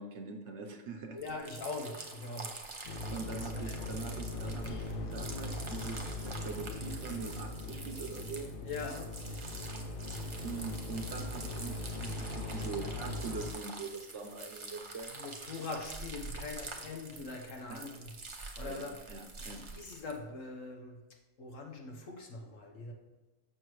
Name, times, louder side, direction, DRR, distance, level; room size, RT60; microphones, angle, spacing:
voice 1, 0.0-1.2 3.1-8.5 10.4-15.1 17.7-17.9 18.6-19.6, right 4 dB, 65° right, 4 dB, 1.0 m, -43 dB
voice 2, 1.1-2.6 3.4-3.8 4.6-5.0 8.6-9.1 15.1-18.1 18.6-19.0 19.4-21.0 21.4-22.9, left 3 dB, 75° left, 2 dB, 1.5 m, -42 dB
sound 1, 1.2-20.2, right 3 dB, 30° right, 0.6 m, -46 dB
sound 2, 2.9-13.5, left 2 dB, 55° left, 0.7 m, -40 dB
6.6 x 6.5 x 3.1 m, 1.2 s
omnidirectional pair, 1.4 m